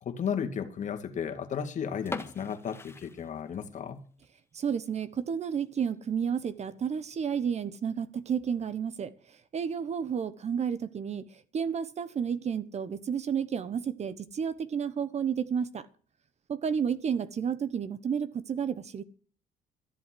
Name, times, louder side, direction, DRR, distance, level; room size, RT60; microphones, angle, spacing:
voice 1, 0.0-4.0, left 7 dB, 45° left, 2.2 m, -34 dB
sound 1, 2.1-3.9 4.2-4.3 4.9-5.0 5.5-5.6 5.8-5.9 6.7-7.0, left 3 dB, 15° left, 1.6 m, -41 dB
voice 2, 4.5-15.9 16.5-19.0, right 7 dB, 40° right, 1.2 m, -31 dB
13.5 x 7.9 x 7.8 m
cardioid pair, 110°, 17 cm